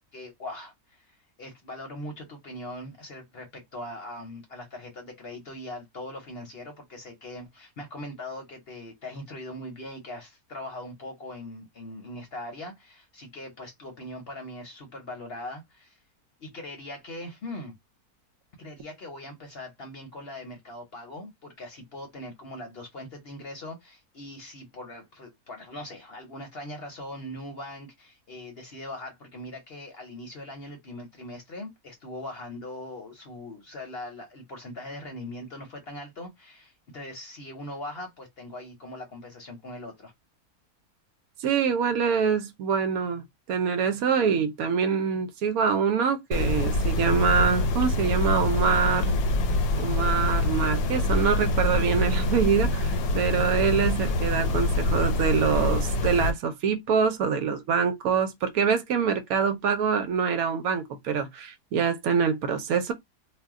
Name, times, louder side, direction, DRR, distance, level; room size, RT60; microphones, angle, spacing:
voice 1, 0.1-16.0 16.4-17.8 18.6-40.1, left 1 dB, 50° left, 0.8 m, -41 dB
voice 2, 41.4-43.2 43.5-49.2 49.8-62.9, right 6 dB, 75° right, 1.0 m, -25 dB
sound 1, 46.3-56.3, left 2 dB, 75° left, 1.1 m, -25 dB
2.6 x 2.1 x 3.5 m
omnidirectional pair, 1.6 m